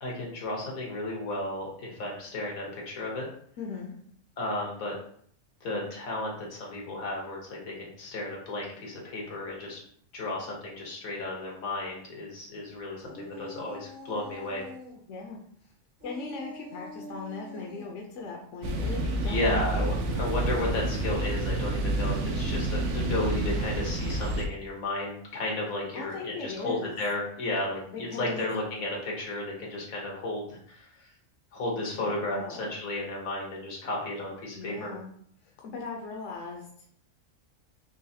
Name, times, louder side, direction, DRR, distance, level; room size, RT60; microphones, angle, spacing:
voice 1, 0.0-3.3 4.4-4.9 5.6-9.8 10.1-14.7 19.2-31.1 31.5-34.9, left 2 dB, 90° left, -2 dB, 1.5 m, -33 dB
voice 2, 3.6-3.9 15.1-15.7 16.0-20.2 25.9-27.0 27.9-28.4 32.0-32.7 34.6-35.1 35.4-36.7, left 4 dB, 70° left, 0 dB, 0.9 m, -39 dB
sound 1, 13.0-15.0 16.0-17.9 21.8-24.0, left 1 dB, 50° right, 1.2 m, -45 dB
sound 2, 18.6-24.5, right 1 dB, 70° right, 0.8 m, -29 dB
3.9 x 3.1 x 2.7 m, 0.63 s
omnidirectional pair, 1.4 m